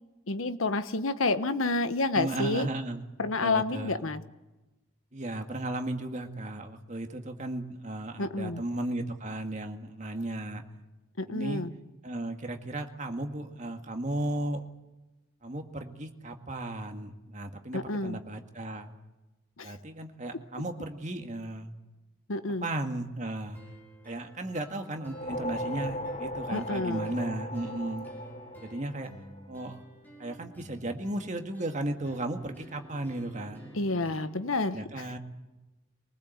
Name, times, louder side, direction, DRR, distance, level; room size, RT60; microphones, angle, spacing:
voice 1, 0.3-2.7 3.2-4.2 8.2-8.6 11.2-11.7 17.7-18.2 19.6-19.7 22.3-22.7 26.5-27.1 33.7-35.1, left 3 dB, 90° left, 11 dB, 1.2 m, -29 dB
voice 2, 2.1-3.0 3.4-4.0 5.1-10.6 11.3-11.6 12.0-14.6 15.4-18.9 19.6-21.7 22.6-23.6 24.1-28.1 28.6-29.1 29.5-29.8 30.2-33.7 34.7-35.2, right 1 dB, 35° right, 5 dB, 2.0 m, -35 dB
sound 1, 23.5-34.5, right 1 dB, 10° left, 5.9 m, -52 dB
sound 2, 25.0-29.5, equal, 30° left, 1.0 m, -37 dB
24.0 x 19.5 x 8.0 m, 1.0 s
head